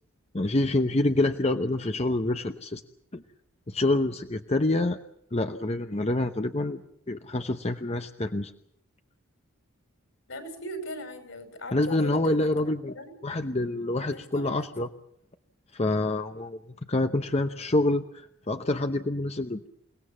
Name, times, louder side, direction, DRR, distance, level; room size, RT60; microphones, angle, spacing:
voice 1, 0.3-2.8 3.1-3.2 3.7-5.0 5.3-6.8 7.1-8.5 11.7-12.9 13.2-14.9 15.7-16.6 16.9-19.7, left 2 dB, 30° left, 7 dB, 0.9 m, -27 dB
voice 2, 10.3-13.2 14.1-14.7, equal, 65° left, 8 dB, 5.5 m, -40 dB
29.0 x 18.5 x 7.2 m, 0.75 s
head